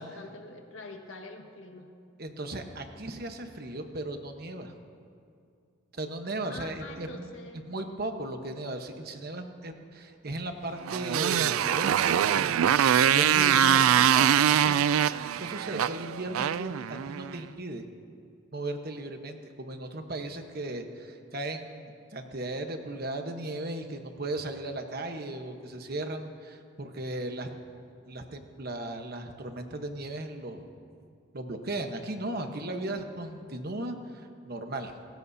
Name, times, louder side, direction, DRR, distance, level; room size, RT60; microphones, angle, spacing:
voice 1, 0.0-1.9 6.5-7.8, left 2 dB, 70° left, 2 dB, 1.6 m, -45 dB
voice 2, 2.2-4.7 5.9-7.3 7.7-12.7 13.1-17.8 18.5-27.5 28.1-30.6 31.3-34.9, right 2 dB, 45° right, 5 dB, 1.1 m, -36 dB
Motorcycle, 10.8-17.4, right 9 dB, 80° right, 0.3 m, -23 dB
sound 1, 12.8-15.7, left 4 dB, 85° left, 5.2 m, -43 dB
29.5 x 15.5 x 2.8 m, 2.4 s
head